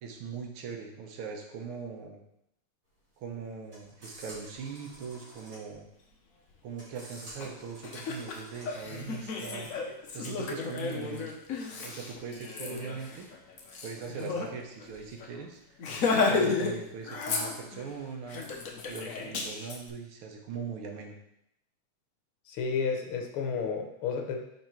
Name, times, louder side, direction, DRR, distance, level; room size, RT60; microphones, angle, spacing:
voice 1, 0.0-2.2 3.2-5.9 6.6-9.7 10.1-11.3 11.8-13.3 13.8-15.8 16.3-18.4 18.9-21.2, right 6 dB, 75° right, 2 dB, 1.8 m, -40 dB
sound 1, 2.9-8.8, equal, 45° right, 3.2 m, -51 dB
Laughter, 7.4-7.5 7.8-14.5 14.8-14.9 15.2-15.4 15.8-16.8 17.0-17.9 18.3-19.8, left 4 dB, 60° left, 0.9 m, -32 dB
voice 2, 22.5-24.4, left 5 dB, 80° left, 3 dB, 1.8 m, -31 dB
5.6 x 4.7 x 4.5 m, 0.80 s
omnidirectional pair, 2.4 m